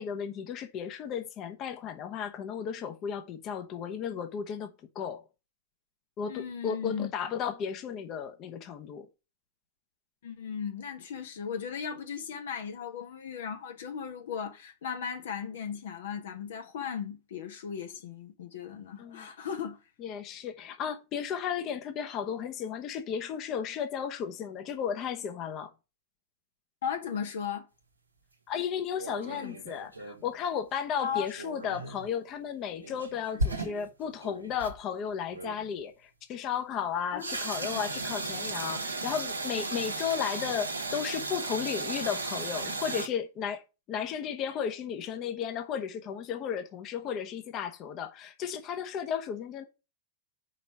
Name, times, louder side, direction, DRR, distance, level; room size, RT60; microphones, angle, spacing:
voice 1, 0.0-5.2 6.2-9.1 19.0-19.3 20.0-25.7 28.5-43.6 43.9-49.6, left 8 dB, 35° left, 0.9 m, -34 dB
voice 2, 6.3-7.1 10.2-19.8 26.8-27.7 29.2-29.6 31.0-31.3 37.1-37.4, left 7 dB, 60° left, 0.9 m, -36 dB
sound 1, 29.0-30.3 31.1-32.1 32.8-34.8 35.3-35.7 37.2-43.1, right 2 dB, 80° right, 1.0 m, -35 dB
5.1 x 4.0 x 5.8 m
figure-of-eight pair, 90°, 0 cm